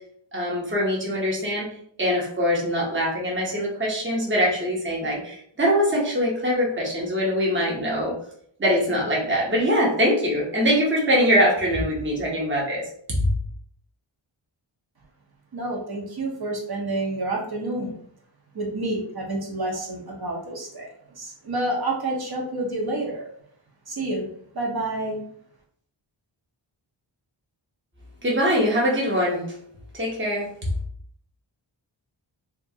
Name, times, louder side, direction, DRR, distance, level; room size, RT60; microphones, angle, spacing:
voice 1, 0.3-1.7 2.0-8.1 8.6-12.8 13.2-13.3 28.2-29.4 29.9-30.5, equal, 25° right, -3 dB, 1.0 m, -23 dB
voice 2, 15.5-17.9 18.5-20.9 21.2-23.3 23.9-24.3 24.5-25.2, right 2 dB, 50° right, -1 dB, 1.0 m, -29 dB
2.9 x 2.4 x 2.8 m, 0.65 s
wide cardioid pair, 65°, 48 cm